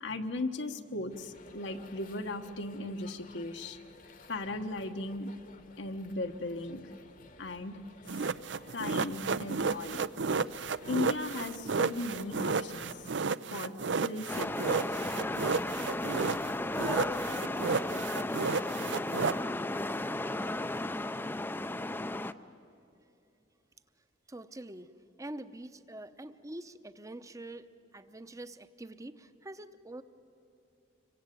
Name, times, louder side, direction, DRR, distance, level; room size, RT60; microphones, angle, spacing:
voice 1, 0.0-3.8 4.3-5.3 5.8-7.0 7.4-7.8 8.0-8.3 8.7-10.0 10.9-12.9 13.5-14.9, left 2 dB, 75° left, 6 dB, 1.4 m, -37 dB
sound 1, 1.1-13.2, left 3 dB, 45° left, 1.2 m, -55 dB
sound 2, 8.1-16.5 16.8-19.4, right 5 dB, 75° right, 0.6 m, -32 dB
sound 3, 14.3-22.3, left 2 dB, 10° left, 0.5 m, -34 dB
voice 2, 24.3-24.9 25.2-30.0, right 1 dB, 20° right, 12 dB, 0.8 m, -45 dB
26.0 x 23.5 x 9.2 m, 2.7 s
head